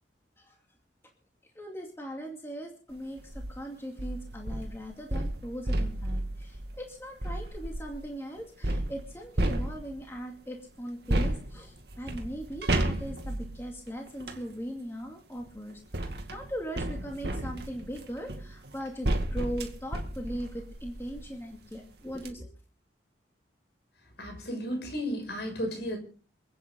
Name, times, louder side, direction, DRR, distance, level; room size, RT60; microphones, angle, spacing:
voice 1, 1.5-22.5, equal, 15° left, 1 dB, 2.4 m, -39 dB
sound 1, 3.2-3.5 4.0-8.0 8.6-10.2 11.1-14.5 15.4-21.3 21.8-21.9 22.1-22.3, right 1 dB, 60° right, 2.2 m, -33 dB
voice 2, 24.2-26.0, equal, 65° left, 3 dB, 6.6 m, -33 dB
28.0 x 9.6 x 3.9 m, 0.38 s
head